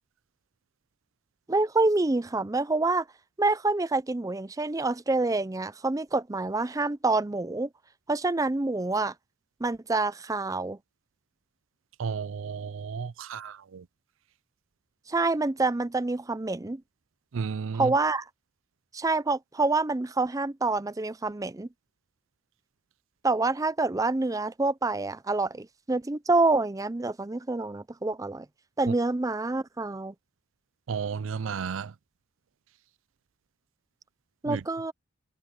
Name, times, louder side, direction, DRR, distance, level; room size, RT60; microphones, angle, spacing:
voice 1, 1.5-3.1 3.4-7.7 8.1-9.1 9.6-10.8 15.1-16.8 17.8-18.3 18.9-21.7 23.2-28.5 28.8-30.1 34.4-34.9, right 3 dB, 15° right, 0.5 m, -27 dB
voice 2, 12.0-13.9 17.3-17.9 28.9-29.0 30.9-31.9 34.4-34.6, right 6 dB, 75° right, 0.5 m, -33 dB
head